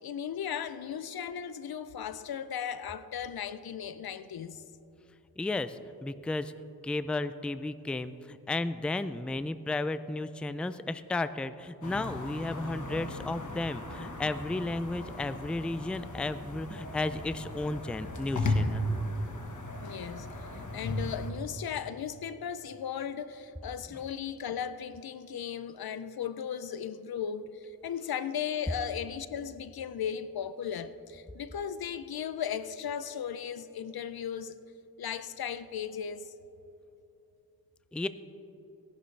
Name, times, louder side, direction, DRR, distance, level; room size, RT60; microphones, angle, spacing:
voice 1, 0.0-4.6 19.8-34.6 35.0-36.3, left 8 dB, 85° left, 0.6 m, -36 dB
voice 2, 5.4-6.5 6.8-18.9 37.9-38.1, left 2 dB, 5° left, 0.3 m, -33 dB
sound 1, 11.8-21.3, left 1 dB, 55° left, 1.4 m, -36 dB
17.5 x 11.5 x 3.3 m
wide cardioid pair, 80°, 36 cm